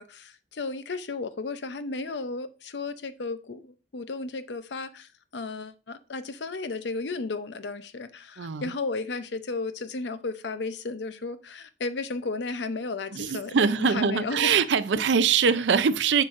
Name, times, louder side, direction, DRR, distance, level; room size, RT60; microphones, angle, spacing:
voice 1, 0.0-14.5, left 3 dB, 65° left, 0.6 m, -34 dB
voice 2, 8.4-8.7 13.1-16.2, right 6 dB, 70° right, 0.5 m, -23 dB
7.1 x 6.7 x 2.5 m
head